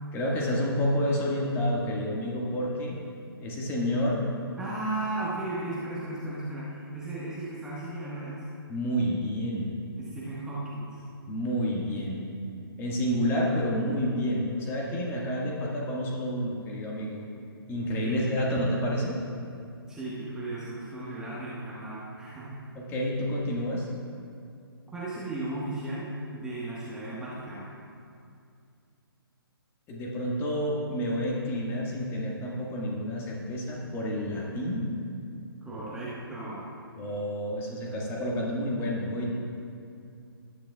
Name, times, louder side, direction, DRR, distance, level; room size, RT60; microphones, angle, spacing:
voice 1, 0.1-3.0 3.4-4.3 8.7-9.7 11.3-12.2 12.8-17.2 17.7-19.2 22.7-23.9 29.9-34.9 36.9-39.3, equal, 20° left, -3 dB, 1.7 m, -29 dB
voice 2, 4.6-8.4 10.0-11.0 17.8-18.7 19.9-22.6 24.9-27.7 35.6-36.7, right 2 dB, 5° right, -8 dB, 1.4 m, -35 dB
18.0 x 9.9 x 2.3 m, 2.4 s
figure-of-eight pair, 135°, 13 cm